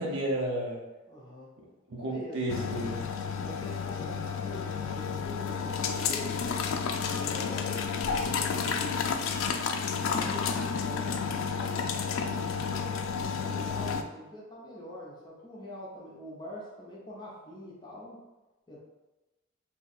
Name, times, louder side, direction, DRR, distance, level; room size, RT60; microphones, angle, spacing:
voice 1, 0.0-0.9 1.6-3.0, right 1 dB, 80° right, -2 dB, 0.5 m, -32 dB
voice 2, 1.1-1.5 2.1-2.7 3.4-6.5 7.0-8.9 9.6-12.4 13.1-18.2 18.7-18.8, left 1 dB, 20° left, -5 dB, 0.7 m, -45 dB
sound 1, 2.5-14.0, left 6 dB, 90° left, 0.3 m, -31 dB
2.7 x 2.3 x 4.0 m, 1.1 s
head